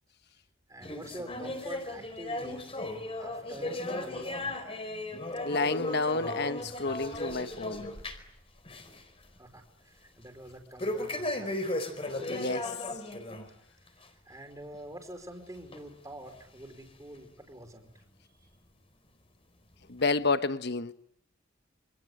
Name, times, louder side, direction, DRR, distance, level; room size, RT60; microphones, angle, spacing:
voice 1, 0.7-2.6 3.2-4.7 9.4-11.8 14.0-18.0, right 1 dB, 15° right, 4.7 m, -47 dB
sound 1, 0.8-8.4 8.6-9.0 9.4-9.5 10.8-13.5 13.9-14.1 14.7-14.8 15.7-15.8 16.6-16.7, left 1 dB, 30° left, 4.5 m, -36 dB
voice 2, 5.4-7.9 12.3-12.7 19.9-20.9, left 3 dB, 55° left, 1.2 m, -30 dB
28.5 x 26.5 x 8.0 m
head